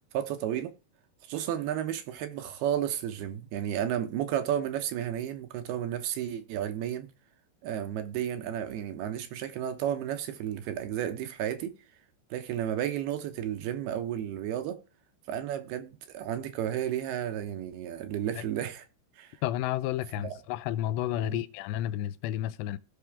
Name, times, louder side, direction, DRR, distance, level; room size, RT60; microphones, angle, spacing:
voice 1, 0.1-0.7 1.3-7.1 7.6-11.7 12.3-14.8 15.3-18.9 19.2-19.4 20.2-20.4 21.2-21.4, right 10 dB, 75° right, 3.0 m, -32 dB
voice 2, 19.4-22.8, left 13 dB, 90° left, 2.9 m, -31 dB
16.0 x 5.9 x 3.5 m
omnidirectional pair, 4.9 m